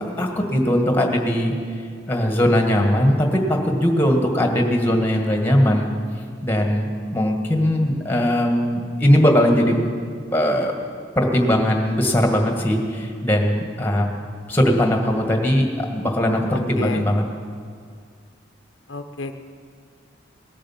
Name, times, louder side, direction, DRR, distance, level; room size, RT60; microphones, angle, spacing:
voice 1, 0.2-1.5 2.1-5.9 6.4-9.7 10.3-10.7 11.1-14.1 14.5-17.2, equal, 10° left, 2 dB, 1.8 m, -19 dB
voice 2, 16.5-17.1 18.9-19.3, left 3 dB, 80° left, 7 dB, 0.9 m, -31 dB
19.0 x 10.5 x 7.3 m, 2.1 s
head